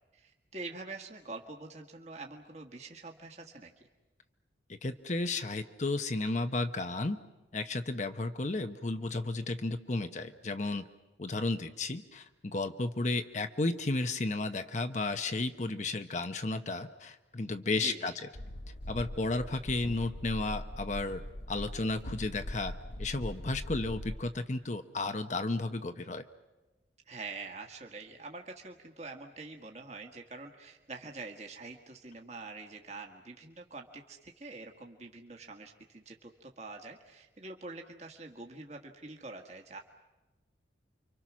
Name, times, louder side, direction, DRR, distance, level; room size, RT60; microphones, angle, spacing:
voice 1, 0.1-3.7 17.7-18.1 27.1-39.8, right 3 dB, 40° right, 2 dB, 1.7 m, -45 dB
voice 2, 4.7-7.2 7.5-10.8 11.2-18.1 18.9-21.2 21.5-22.7 23.0-26.2, left 2 dB, 40° left, 8 dB, 0.9 m, -33 dB
sound 1, 18.3-24.2, left 1 dB, 85° left, 1.4 m, -41 dB
29.5 x 25.0 x 6.2 m, 1.1 s
head